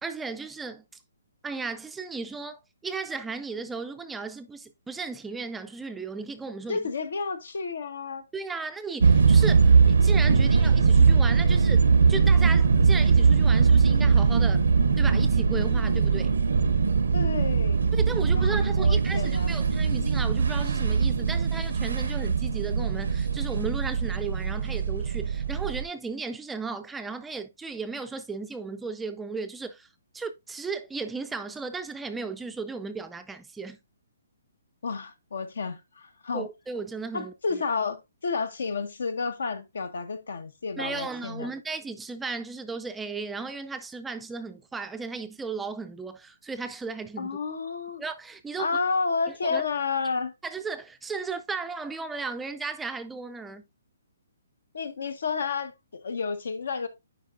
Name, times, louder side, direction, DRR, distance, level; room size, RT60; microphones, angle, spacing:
voice 1, 0.0-0.8 1.4-6.8 8.3-14.6 15.0-16.4 17.9-29.9 30.1-33.8 36.3-37.6 40.8-47.3 48.0-48.7 49.4-49.6 50.4-53.6, right 4 dB, 5° right, 0.4 m, -35 dB
voice 2, 6.7-8.2 17.1-17.8 18.3-19.5 34.8-36.5 37.1-41.5 47.2-48.0 48.6-50.3 54.7-56.9, left 4 dB, 80° left, 1.2 m, -31 dB
sound 1, 9.0-25.8, right 5 dB, 90° right, 0.9 m, -21 dB
10.0 x 4.6 x 2.5 m
hypercardioid pair, 155°, 0 cm